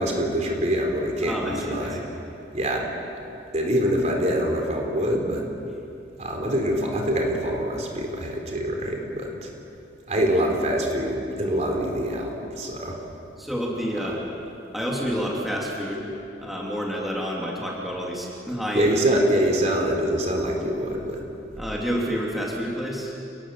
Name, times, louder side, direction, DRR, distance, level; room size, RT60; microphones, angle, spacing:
voice 1, 0.0-2.0 2.5-2.9 3.5-5.5 6.2-9.5 10.1-13.0 18.7-21.2, equal, 40° right, 1 dB, 4.0 m, -25 dB
voice 2, 1.2-2.1 13.4-14.2 14.7-16.1 16.4-18.9 21.6-23.1, equal, ahead, -4 dB, 3.2 m, -29 dB
29.0 x 20.0 x 7.6 m, 2.7 s
head